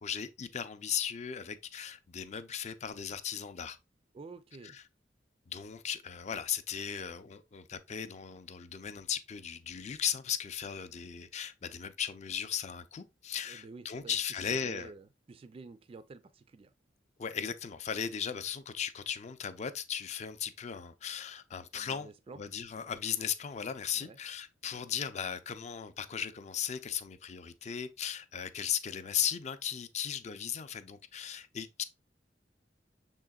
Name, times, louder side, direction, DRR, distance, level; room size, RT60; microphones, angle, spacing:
voice 1, 0.0-3.8 4.6-4.8 5.5-14.9 17.2-31.8, left 8 dB, 40° left, 0.4 m, -37 dB
voice 2, 4.1-4.8 13.5-16.7 21.7-22.4 23.9-24.2, right 4 dB, 30° right, 0.3 m, -50 dB
6.3 x 3.8 x 2.3 m
head